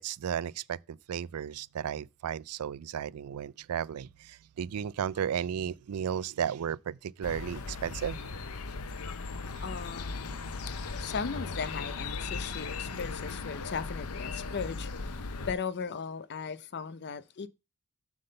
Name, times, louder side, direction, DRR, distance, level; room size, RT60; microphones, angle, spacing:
voice 1, 0.0-8.2, right 8 dB, 90° right, 0.4 m, -34 dB
sound 1, 7.2-15.5, left 4 dB, 85° left, 0.7 m, -37 dB
voice 2, 9.6-10.5 11.0-17.5, left 5 dB, 50° left, 0.5 m, -37 dB
7.8 x 3.6 x 6.5 m
head